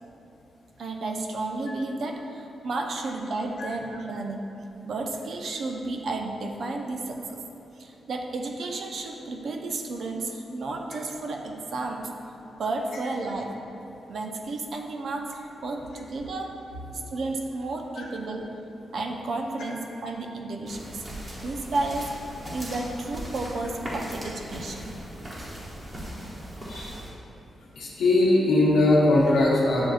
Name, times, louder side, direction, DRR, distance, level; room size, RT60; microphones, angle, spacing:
voice 1, 0.8-4.4 4.8-7.4 7.8-12.1 12.6-13.5 14.1-16.6 17.1-18.5 18.9-21.0 21.4-22.1 22.5-24.8, right 2 dB, 60° right, 3 dB, 0.4 m, -32 dB
sound 1, 20.7-27.1, equal, 25° right, 0.8 m, -38 dB
voice 2, 27.8-29.9, left 2 dB, 85° left, -4 dB, 0.8 m, -20 dB
7.5 x 2.5 x 2.4 m, 2.9 s
wide cardioid pair, 145°, 0 cm